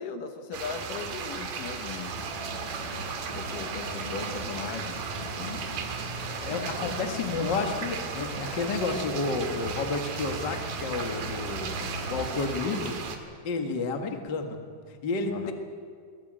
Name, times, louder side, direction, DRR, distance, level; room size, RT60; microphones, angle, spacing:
voice 1, 0.0-2.1 3.3-5.7 6.6-7.4 8.1-8.3 15.3-15.5, left 5 dB, 70° left, 6 dB, 2.7 m, -38 dB
sound 1, 0.5-13.2, right 5 dB, 70° right, 3.5 m, -36 dB
sound 2, 2.1-12.4, equal, 50° right, 6.6 m, -41 dB
voice 2, 6.2-13.0 13.4-14.6 14.9-15.5, left 3 dB, 40° left, 4 dB, 1.8 m, -31 dB
22.0 x 19.0 x 9.0 m, 2.1 s
omnidirectional pair, 4.2 m